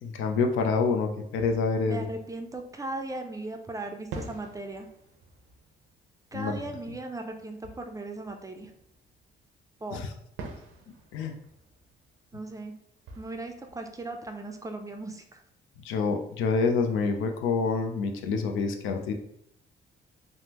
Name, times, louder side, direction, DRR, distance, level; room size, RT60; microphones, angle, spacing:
voice 1, 0.0-2.1 6.3-6.6 9.9-10.0 11.1-11.3 15.8-19.1, left 4 dB, 85° left, 4 dB, 0.5 m, -27 dB
Fireworks, 1.3-3.3 4.1-9.5 10.4-15.1, right 3 dB, 85° right, 0.6 m, -48 dB
voice 2, 1.9-4.9 6.3-8.7 9.8-10.1 12.3-12.8 13.2-15.4, right 2 dB, 15° right, 5 dB, 0.4 m, -37 dB
3.4 x 2.0 x 2.9 m, 0.76 s
cardioid pair, 90°, 20 cm